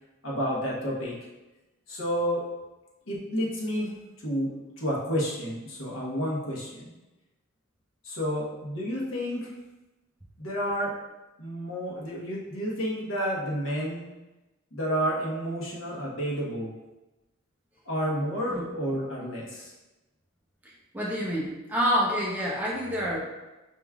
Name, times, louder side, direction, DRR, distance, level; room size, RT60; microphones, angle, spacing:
voice 1, 0.2-1.1 1.9-2.4 3.1-3.9 4.2-6.9 8.0-9.5 10.4-10.9 11.4-14.0 14.7-16.7 17.9-19.7, equal, 65° left, -4 dB, 1.1 m, -30 dB
voice 2, 20.9-23.2, equal, 10° right, -5 dB, 0.7 m, -27 dB
5.0 x 3.5 x 2.3 m, 1.1 s
head